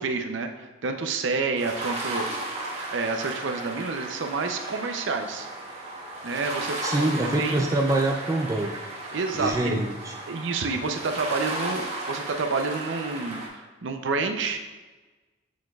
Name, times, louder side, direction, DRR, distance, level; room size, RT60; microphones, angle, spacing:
voice 1, 0.0-2.2 2.9-5.5 6.2-7.1 7.4-7.7 9.1-9.8 10.3-14.6, right 4 dB, 65° right, 5 dB, 0.5 m, -29 dB
sound 1, 1.6-13.5, right 2 dB, 30° right, 1.0 m, -35 dB
voice 2, 6.8-8.7 9.4-10.1, right 1 dB, 15° right, 1 dB, 0.3 m, -25 dB
6.6 x 6.3 x 2.3 m, 1.3 s
head